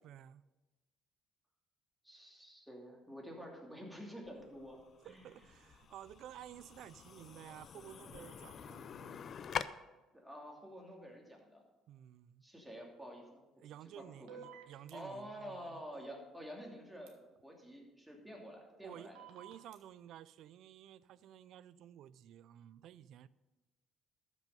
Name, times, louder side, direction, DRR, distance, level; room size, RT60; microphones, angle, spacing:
voice 1, 0.0-0.4 5.0-9.4 11.9-12.4 13.6-15.8 18.8-23.3, right 11 dB, 70° right, 18 dB, 0.4 m, -53 dB
voice 2, 2.0-5.2 10.1-11.6 12.4-13.4 14.0-14.4 14.9-19.2, equal, 5° right, 0 dB, 2.7 m, -49 dB
sound 1, 4.2-9.6, left 7 dB, 45° left, 0.5 m, -46 dB
sound 2, 14.3-14.9 17.1-17.2 19.2-19.8, right 8 dB, 85° right, 1.4 m, -52 dB
13.0 x 6.1 x 5.3 m, 1.1 s
cardioid pair, 105°, 0 cm